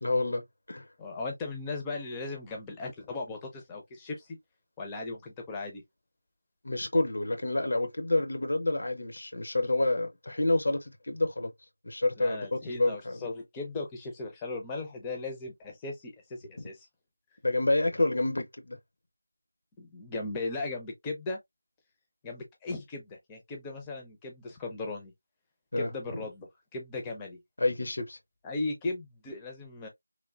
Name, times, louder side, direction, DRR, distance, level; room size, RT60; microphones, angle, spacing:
voice 1, 0.0-0.8 6.6-11.5 11.8-13.2 17.4-18.8 25.7-26.2 27.6-28.2, left 2 dB, 60° left, 0.6 m, -28 dB
voice 2, 1.0-4.4 4.8-5.8 12.2-16.9 19.8-21.4 22.2-25.1 25.8-27.4 28.4-29.9, left 3 dB, 10° left, 0.5 m, -37 dB
3.1 x 2.2 x 2.3 m
figure-of-eight pair, 170°, 0 cm